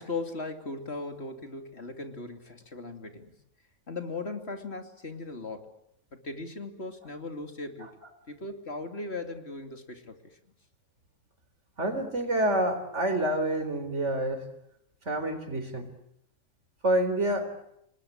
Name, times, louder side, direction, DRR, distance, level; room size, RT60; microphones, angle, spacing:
voice 1, 0.0-3.3 3.9-5.7 6.2-7.9 8.3-10.4, left 3 dB, 60° left, 6 dB, 3.1 m, -38 dB
voice 2, 11.8-14.5 15.1-15.9 16.8-17.5, right 1 dB, 75° right, 8 dB, 4.4 m, -27 dB
29.5 x 20.0 x 8.7 m, 0.79 s
omnidirectional pair, 1.2 m